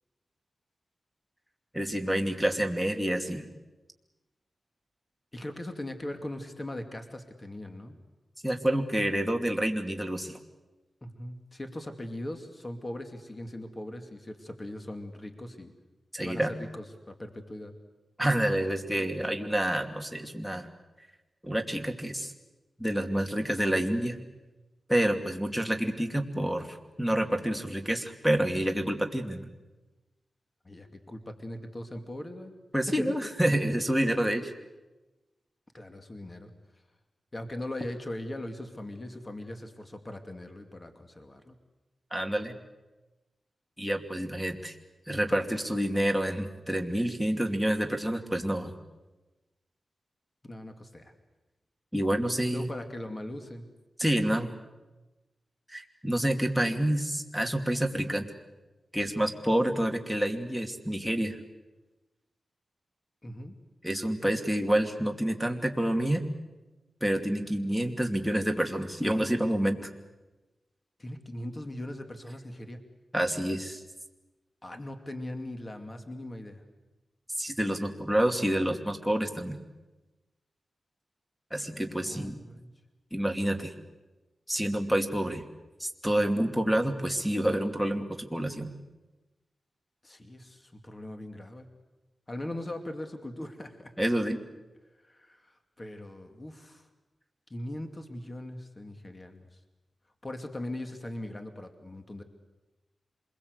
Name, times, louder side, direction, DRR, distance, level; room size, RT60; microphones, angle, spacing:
voice 1, 1.7-3.4 8.4-10.4 16.1-16.5 18.2-20.7 21.4-22.3 22.8-24.2 24.9-29.5 32.7-34.5 42.1-42.5 43.8-44.7 45.1-48.7 51.9-52.7 54.0-54.5 55.7-58.3 58.9-61.4 63.8-66.3 67.0-69.9 73.1-73.8 77.4-79.6 81.5-82.4 83.1-83.7 84.5-85.5 85.8-88.7 94.0-94.4, right 1 dB, ahead, 3 dB, 2.6 m, -28 dB
voice 2, 5.3-8.0 11.0-15.7 16.2-17.7 30.6-32.5 33.0-33.2 35.7-36.5 37.3-41.5 50.4-51.1 52.5-53.7 63.2-63.5 71.0-72.8 74.6-76.6 81.9-82.7 90.0-91.7 92.3-93.9 95.0-96.9 97.5-99.6 100.2-102.2, left 1 dB, 30° left, 6 dB, 2.5 m, -40 dB
27.0 x 21.5 x 8.1 m, 1.1 s
cardioid pair, 60°, 0 cm